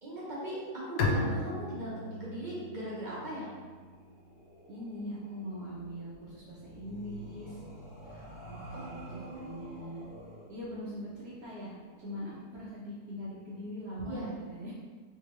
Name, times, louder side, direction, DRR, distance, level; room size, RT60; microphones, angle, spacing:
voice 1, 0.0-3.5 8.0-8.3 8.7-10.0 14.0-14.3, right 1 dB, 35° right, -8 dB, 0.9 m, -40 dB
Bowed string instrument, 1.0-4.5, left 2 dB, 85° left, 1.1 m, -35 dB
sound 1, 3.6-12.5, equal, 60° left, 2.0 m, -50 dB
voice 2, 4.7-7.6 8.5-10.1 10.5-14.7, equal, 70° right, -8 dB, 1.2 m, -41 dB
3.6 x 2.8 x 3.0 m, 1.5 s
omnidirectional pair, 1.7 m